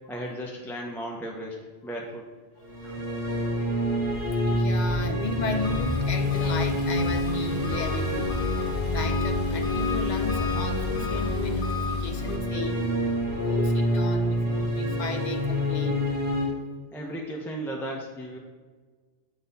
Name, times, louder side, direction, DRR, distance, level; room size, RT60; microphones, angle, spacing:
voice 1, 0.1-2.3 2.8-3.0 16.9-18.4, right 1 dB, 5° left, -1 dB, 0.5 m, -35 dB
sound 1, 2.6-16.5, left 1 dB, 70° right, 1.5 m, -27 dB
voice 2, 4.0-8.5 8.9-12.9 13.3-16.0, left 2 dB, 50° left, 6 dB, 0.7 m, -34 dB
Run, 4.9-11.2, left 3 dB, 25° left, 1.1 m, -39 dB
Engine, 5.6-12.4, left 5 dB, 85° left, 1.2 m, -33 dB
8.1 x 4.0 x 4.0 m, 1.4 s
omnidirectional pair, 1.0 m